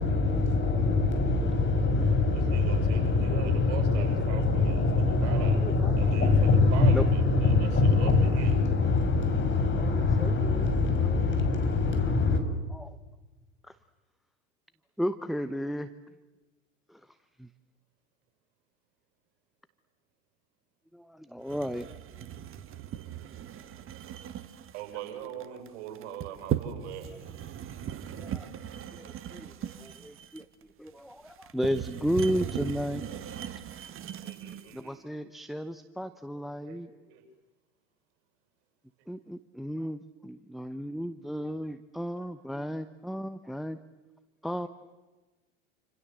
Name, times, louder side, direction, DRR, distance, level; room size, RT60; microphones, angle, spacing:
voice 1, 0.0-12.4, left 3 dB, 30° left, 6.0 m, -24 dB
voice 2, 2.3-5.6 6.0-8.6 23.7-23.8 24.7-27.1 34.2-35.0 36.6-36.8 37.1-37.2, right 9 dB, 60° right, 7.5 m, -41 dB
voice 3, 3.6-4.1 5.1-6.4 6.9-7.1 8.7-8.9 9.8-10.7 11.0-11.8 12.7-13.0 13.6-13.8 15.0-16.2 16.9-17.5 20.9-21.9 27.1-27.4 28.2-28.5 28.9-30.5 30.8-33.0 34.7-36.9 39.1-43.8 44.4-44.7, equal, ahead, 0.9 m, -35 dB
sound 1, 21.5-34.8, right 10 dB, 35° right, 1.8 m, -38 dB
29.0 x 26.0 x 7.6 m
hypercardioid pair, 85°, 37 cm